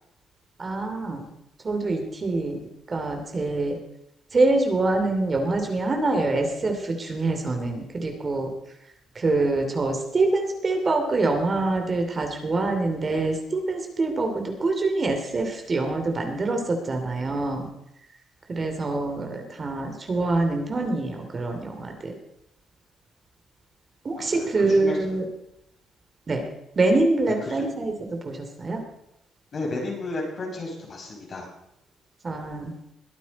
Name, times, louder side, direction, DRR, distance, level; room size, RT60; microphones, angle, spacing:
voice 1, 0.6-1.3 1.6-2.6 2.9-3.8 4.3-8.5 9.1-17.7 18.5-22.1 24.0-25.2 26.3-26.5 26.7-27.9 28.2-28.8 32.2-32.7, right 2 dB, 35° right, 4 dB, 2.8 m, -25 dB
voice 2, 24.2-25.0 27.4-27.6 29.5-31.5, left 2 dB, 50° left, -1 dB, 5.7 m, -33 dB
21.5 x 9.3 x 4.2 m, 0.82 s
cardioid pair, 90°, 0 cm